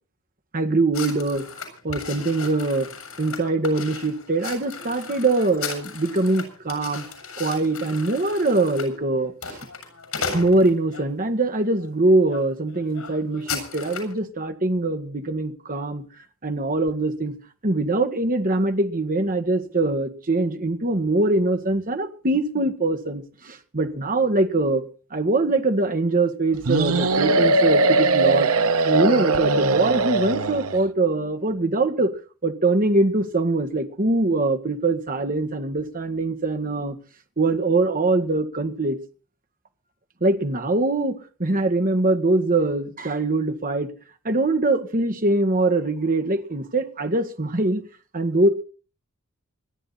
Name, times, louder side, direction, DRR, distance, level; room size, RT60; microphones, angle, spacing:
voice 1, 0.5-1.5 1.8-2.9 3.2-7.1 7.4-9.6 10.3-16.0 16.4-17.3 17.6-24.8 25.1-28.5 28.8-32.1 32.4-37.0 37.4-39.0 40.2-43.9 44.2-47.8 48.1-48.5, right 2 dB, 40° right, 1.7 m, -23 dB
sound 1, 0.9-11.1 11.7-11.9 12.3-12.4 12.7-14.2, left 5 dB, 80° left, 7.1 m, -36 dB
sound 2, 26.6-30.8, right 3 dB, 85° right, 0.9 m, -20 dB
27.0 x 10.0 x 4.2 m
head